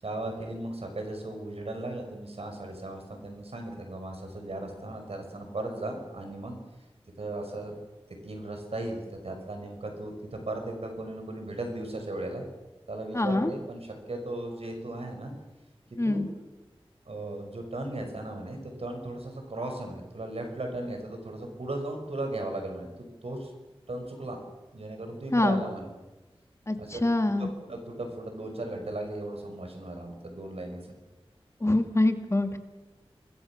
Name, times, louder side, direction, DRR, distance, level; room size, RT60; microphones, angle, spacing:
voice 1, 0.0-6.6 7.2-7.7 8.2-12.5 12.9-15.3 16.0-16.2 17.1-23.5 23.9-24.4 24.7-25.9 26.8-27.1 27.4-30.9, right 2 dB, 80° right, 4 dB, 5.8 m, -36 dB
voice 2, 13.1-13.5 16.0-16.3 25.3-25.6 26.7-27.5 31.6-32.6, left 2 dB, 30° left, 7 dB, 2.0 m, -25 dB
28.5 x 22.5 x 6.3 m, 1.1 s
wide cardioid pair, 60°, 10 cm